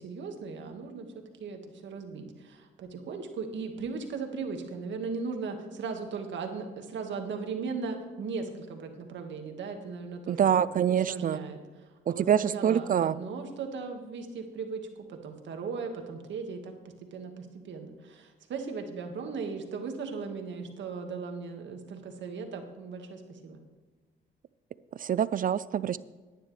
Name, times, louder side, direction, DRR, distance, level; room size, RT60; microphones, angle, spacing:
voice 1, 0.0-10.6 10.9-11.6 12.1-23.6, right 5 dB, 70° right, 4 dB, 2.0 m, -37 dB
voice 2, 10.3-11.4 12.1-13.1 24.9-26.0, right 9 dB, 45° right, 18 dB, 0.4 m, -25 dB
17.0 x 10.5 x 3.4 m, 1.3 s
cardioid pair, 90°, 20 cm